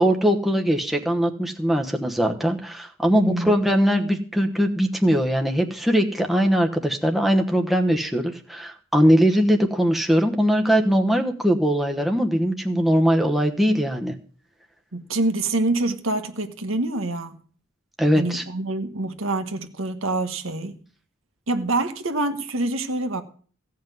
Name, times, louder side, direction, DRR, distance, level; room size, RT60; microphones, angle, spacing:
voice 1, 0.0-14.1 18.0-18.4, equal, ahead, 1.1 m, -21 dB
voice 2, 3.1-3.5 14.9-17.4 18.1-20.8 21.5-23.2, right 2 dB, 80° right, 1.6 m, -26 dB
16.0 x 5.7 x 9.2 m
head